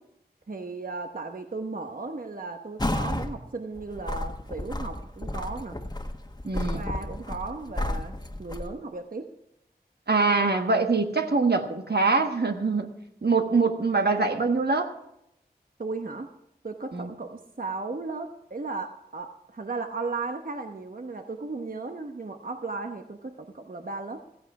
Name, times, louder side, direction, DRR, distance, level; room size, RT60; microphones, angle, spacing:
voice 1, 0.5-5.8 6.5-9.3 15.8-16.3 16.6-24.2, right 3 dB, 55° right, 5 dB, 1.0 m, -35 dB
sound 1, 2.8-3.3 3.8-8.7, left 1 dB, 25° left, 1.4 m, -32 dB
voice 2, 6.4-6.8 10.1-12.9 13.2-14.9 16.9-17.1, right 4 dB, 80° right, 5 dB, 1.4 m, -24 dB
15.0 x 14.5 x 4.8 m, 0.81 s
wide cardioid pair, 55°, 17 cm